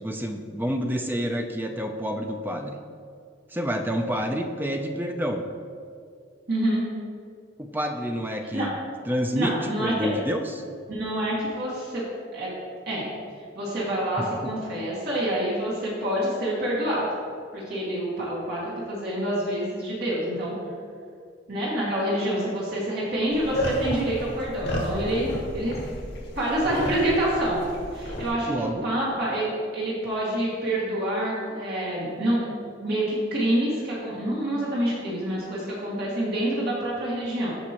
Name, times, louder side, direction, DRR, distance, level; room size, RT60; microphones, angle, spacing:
voice 1, 0.0-2.8 3.5-5.4 7.6-8.8 9.1-10.5 14.2-14.3 28.5-28.9, equal, 10° right, 4 dB, 0.5 m, -28 dB
voice 2, 6.5-6.8 8.5-8.7 9.3-10.1 10.9-12.0 12.3-12.5 12.9-13.1 13.5-17.1 17.5-20.5 21.5-25.8 26.4-27.6 27.9-32.4 32.8-37.5, right 1 dB, 55° right, -7 dB, 2.1 m, -27 dB
sound 1, 23.3-28.3, equal, 65° left, 2.0 m, -32 dB
14.5 x 5.3 x 3.0 m, 2.3 s
head